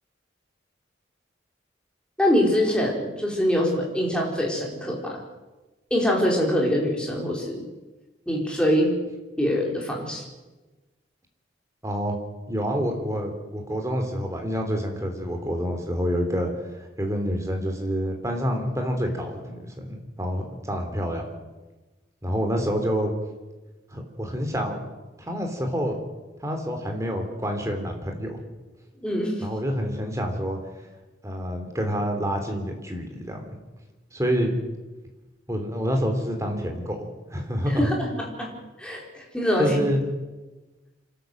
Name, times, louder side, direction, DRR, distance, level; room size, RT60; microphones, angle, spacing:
voice 1, 2.2-5.2 5.9-7.6 8.3-8.9 9.4-10.2 29.0-29.4 37.7-38.5 38.8-39.8, equal, 5° left, -2 dB, 4.4 m, -24 dB
voice 2, 11.8-12.1 12.5-21.2 22.2-23.1 23.9-24.8 25.3-26.0 26.4-28.4 29.4-30.6 31.2-33.6 34.1-34.5 35.5-37.9 39.6-40.0, equal, 15° right, 3 dB, 3.3 m, -27 dB
27.0 x 12.5 x 7.9 m, 1.2 s
head